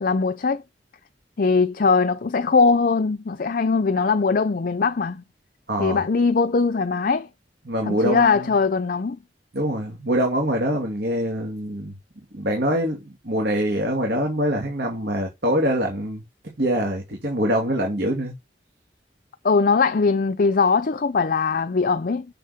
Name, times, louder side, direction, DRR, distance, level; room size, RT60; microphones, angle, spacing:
voice 1, 0.0-0.6 1.4-5.2 5.8-7.3 7.9-9.2 19.4-22.3, left 4 dB, 50° left, 0.5 m, -21 dB
voice 2, 5.7-6.0 7.7-8.5 9.5-12.0 12.3-16.2 16.6-18.3, equal, 65° right, 2.4 m, -24 dB
6.5 x 6.5 x 3.6 m
head